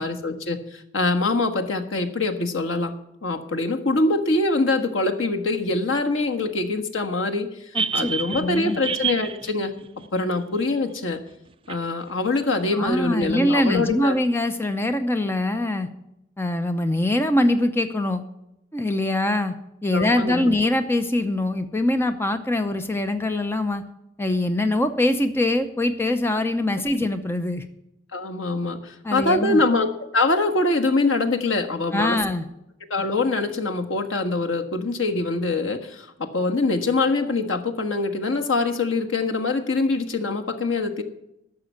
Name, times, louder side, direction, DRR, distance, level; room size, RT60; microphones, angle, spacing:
voice 1, 0.0-2.9 3.2-7.5 7.9-9.7 10.1-11.2 11.7-14.2 19.9-20.5 28.1-29.9 30.1-32.2 32.9-41.0, left 2 dB, 90° left, 4 dB, 1.5 m, -24 dB
voice 2, 7.7-8.8 12.8-15.9 16.4-18.2 18.7-19.5 19.8-23.8 24.2-27.6 29.0-29.6 31.9-32.4, left 1 dB, 10° left, 9 dB, 0.6 m, -23 dB
sound 1, 7.7-10.8 11.7-11.8, right 6 dB, 25° right, 0.4 m, -29 dB
11.5 x 6.9 x 9.5 m, 0.84 s
head